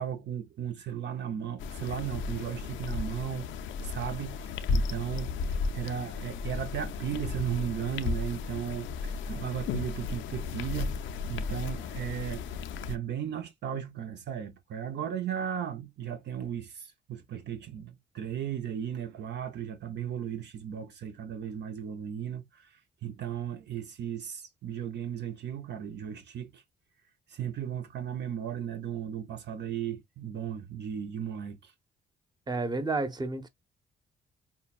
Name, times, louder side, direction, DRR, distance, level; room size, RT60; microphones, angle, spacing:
voice 1, 0.0-3.5 3.8-5.4 5.7-12.4 12.9-22.7 23.0-26.6 27.3-31.7, right 9 dB, 60° right, 0.7 m, -36 dB
sound 1, 1.6-13.0, left 4 dB, 75° left, 0.5 m, -34 dB
voice 2, 32.5-33.5, right 3 dB, 20° right, 0.8 m, -31 dB
5.5 x 2.2 x 2.4 m
cardioid pair, 90°, 20 cm